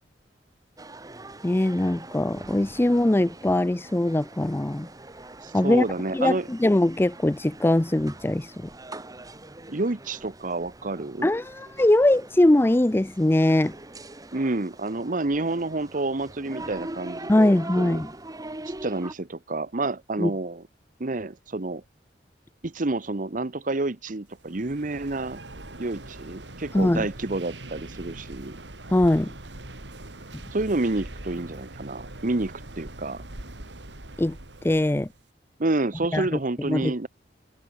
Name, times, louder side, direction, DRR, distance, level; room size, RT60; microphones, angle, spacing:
sound 1, 0.8-19.1, right 2 dB, 20° right, 1.5 m, -42 dB
voice 1, 1.4-4.9 5.5-5.8 6.1-8.5 11.2-13.7 17.3-18.1 20.2-20.3 26.7-27.1 28.9-29.3 34.2-34.4 34.6-35.1 36.1-36.3 36.7-37.1, left 1 dB, 15° left, 0.4 m, -21 dB
voice 2, 5.4-6.5 9.7-11.3 14.3-18.0 18.6-20.6 21.0-21.8 22.6-25.4 25.8-28.6 30.5-33.2 35.6-37.1, right 2 dB, 50° right, 1.1 m, -29 dB
sound 2, 24.4-35.2, right 1 dB, 85° right, 3.4 m, -42 dB
head